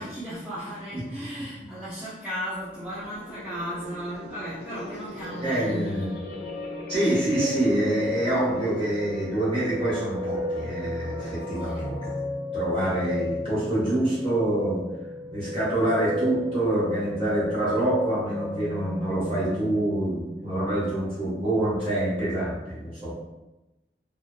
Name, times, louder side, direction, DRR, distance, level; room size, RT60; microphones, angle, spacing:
voice 1, 0.0-6.2 11.5-11.9, equal, 5° right, -11 dB, 0.4 m, -35 dB
sound 1, 2.6-12.1, left 1 dB, 60° left, 0.5 m, -41 dB
sound 2, 5.2-21.5 21.8-22.6, left 2 dB, 65° right, 0.6 m, -35 dB
voice 2, 5.4-6.1 6.9-11.9 12.5-14.8 15.3-23.2, right 1 dB, 30° right, -9 dB, 1.1 m, -26 dB
2.7 x 2.3 x 2.2 m, 1.0 s
head